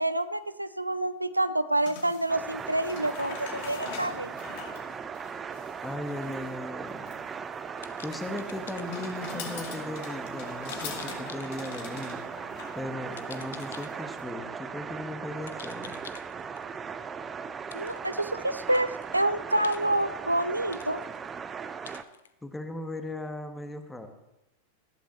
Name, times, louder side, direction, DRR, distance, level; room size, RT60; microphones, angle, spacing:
voice 1, 0.0-4.3 17.7-21.0, right 1 dB, 85° right, 13 dB, 0.5 m, -28 dB
sound 1, 1.8-14.2, left 6 dB, 50° left, 2.5 m, -44 dB
sound 2, 2.3-22.0, right 6 dB, 20° right, 0.7 m, -38 dB
voice 2, 5.8-7.1 8.0-12.2 12.7-16.0 22.4-24.1, left 2 dB, 10° left, 7 dB, 1.5 m, -37 dB
sound 3, 6.1-6.5 7.8-9.2 10.7-12.1 13.1-14.4 15.4-16.8 17.7-18.1 18.6-19.3 19.6-20.4 20.7-21.4 21.8-22.3, left 7 dB, 65° left, 0.8 m, -48 dB
19.5 x 14.5 x 3.1 m, 0.93 s
figure-of-eight pair, 90°, 0 cm